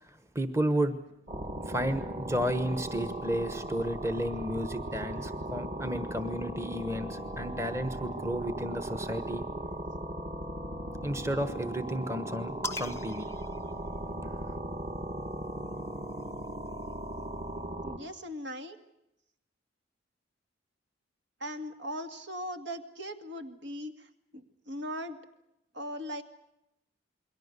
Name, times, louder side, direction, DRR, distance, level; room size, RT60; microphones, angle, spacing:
voice 1, 0.3-1.0 1.7-9.4 11.0-13.3, right 1 dB, 15° right, 9 dB, 1.2 m, -32 dB
sound 1, 1.3-18.0, right 1 dB, 35° right, 2.2 m, -38 dB
sound 2, 12.6-14.4 15.5-17.2, left 1 dB, 15° left, 0.8 m, -43 dB
voice 2, 17.8-18.8 21.4-25.2 25.7-26.2, equal, 70° right, 6 dB, 2.3 m, -39 dB
28.5 x 22.5 x 6.8 m, 0.84 s
head